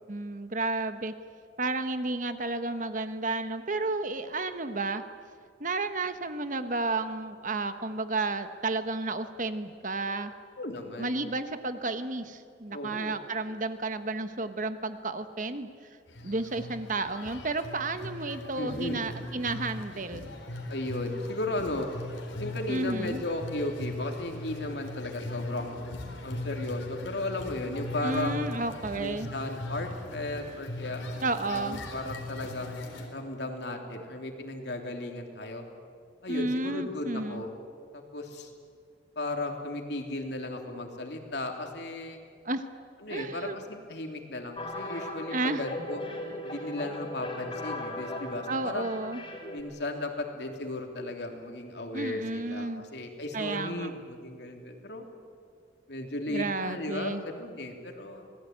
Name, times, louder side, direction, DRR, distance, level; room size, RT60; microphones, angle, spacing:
voice 1, 0.1-1.1 1.6-5.0 5.6-10.3 11.0-15.7 16.2-20.3 22.7-23.2 28.0-29.3 31.2-31.8 36.3-37.4 42.4-42.6 43.1-43.6 44.9-45.0 45.3-45.6 48.5-49.2 51.9-52.8 53.3-53.9 56.3-57.2, right 3 dB, 45° right, 10 dB, 1.2 m, -32 dB
voice 2, 10.6-11.2 12.7-13.2 18.6-19.0 20.7-21.9 22.4-25.7 26.2-28.5 29.0-31.0 31.5-32.8 33.1-35.6 36.2-37.5 37.9-38.5 39.1-42.2 43.0-46.0 46.4-48.9 49.5-55.1 55.9-58.2, left 2 dB, 60° left, 3 dB, 3.2 m, -35 dB
sound 1, 16.1-33.1, left 2 dB, 90° left, 4.2 m, -39 dB
sound 2, 44.6-49.6, left 1 dB, 25° left, 3.6 m, -38 dB
26.5 x 19.0 x 9.4 m, 2.2 s
head